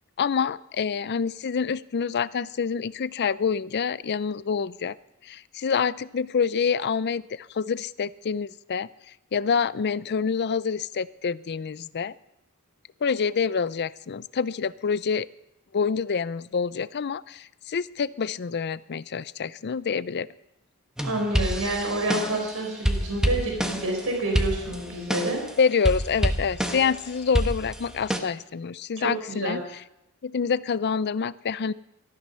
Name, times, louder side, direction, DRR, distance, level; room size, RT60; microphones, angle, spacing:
voice 1, 0.2-4.9 5.2-8.9 9.3-12.1 13.0-15.3 15.7-20.3 25.6-29.6 30.2-31.7, left 6 dB, 50° left, 17 dB, 0.5 m, -27 dB
sound 1, 21.0-22.5 22.9-24.0 24.4-25.5 25.9-27.0 27.4-28.2, equal, 5° right, 1.3 m, -27 dB
voice 2, 21.0-25.4 29.0-29.6, right 2 dB, 70° right, 1 dB, 4.5 m, -28 dB
18.5 x 13.5 x 5.6 m, 0.83 s
head